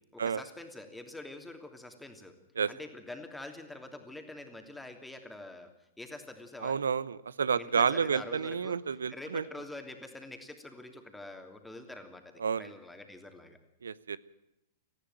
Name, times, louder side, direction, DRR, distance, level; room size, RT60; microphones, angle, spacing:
voice 1, 0.1-2.3 2.7-5.7 6.0-6.8 7.6-8.8 9.1-13.6, left 2 dB, 5° left, 5 dB, 3.0 m, -45 dB
voice 2, 6.6-9.4 12.4-12.7 13.8-14.2, right 6 dB, 70° right, 19 dB, 0.8 m, -30 dB
19.0 x 15.0 x 9.2 m, 0.83 s
figure-of-eight pair, 100°, 0 cm